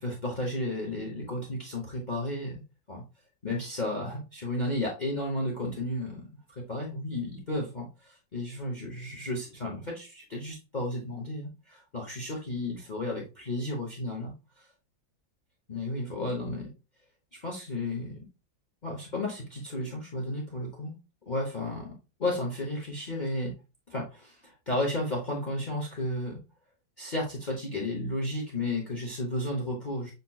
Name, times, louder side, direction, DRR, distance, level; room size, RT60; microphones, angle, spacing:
voice 1, 0.0-2.6 2.9-3.0 3.4-6.3 6.6-14.3 15.7-16.7 17.3-18.2 18.8-20.9 21.3-21.9 22.2-23.5 23.9-26.4 27.0-30.1, left 1 dB, 45° left, -1 dB, 0.5 m, -33 dB
6.6 x 2.9 x 2.2 m, 0.29 s
omnidirectional pair, 2.2 m